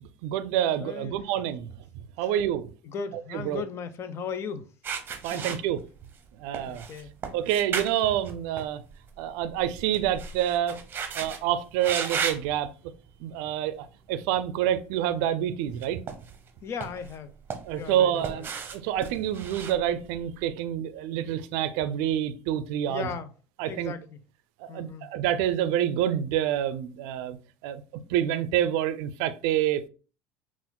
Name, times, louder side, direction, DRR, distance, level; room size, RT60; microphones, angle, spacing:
voice 1, 0.0-1.7 2.2-2.7 3.3-3.6 5.2-5.8 6.4-6.8 7.3-8.8 9.2-10.8 11.1-12.7 13.2-16.0 17.6-23.1 23.6-23.9 24.6-27.4 27.6-29.9, right 11 dB, 70° right, 0.4 m, -27 dB
voice 2, 0.8-1.2 2.2-2.3 2.8-4.7 5.3-5.6 6.7-7.1 16.6-17.3 17.7-18.5 22.9-23.3 23.7-24.2 24.7-25.1, left 6 dB, 45° left, 0.5 m, -37 dB
sound 1, 4.8-6.2 6.5-9.1 9.4-11.4 11.8-12.5 13.1-13.4 15.7-16.5 16.8-17.9 18.2-20.4, right 6 dB, 35° right, 0.7 m, -35 dB
5.6 x 2.5 x 2.2 m
hypercardioid pair, 90°, 6 cm